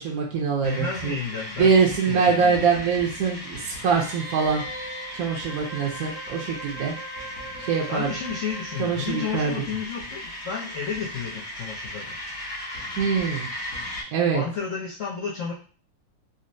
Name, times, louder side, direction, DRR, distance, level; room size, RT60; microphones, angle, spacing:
voice 1, 0.0-1.2 1.6-4.6 5.2-6.9 7.7-8.1 8.8-9.5 13.0-13.5 14.1-14.4, right 5 dB, 65° right, -1 dB, 0.9 m, -23 dB
voice 2, 0.6-1.7 2.1-2.6 7.9-12.2 14.3-15.5, left 6 dB, 70° left, -4 dB, 0.7 m, -32 dB
sound 1, 0.6-14.0, left 1 dB, 50° left, 1.2 m, -37 dB
Wind instrument woodwind instrument, 3.9-9.5 9.8-9.9, right 1 dB, 85° right, 1.6 m, -40 dB
4.0 x 2.1 x 2.6 m, 0.37 s
omnidirectional pair, 2.1 m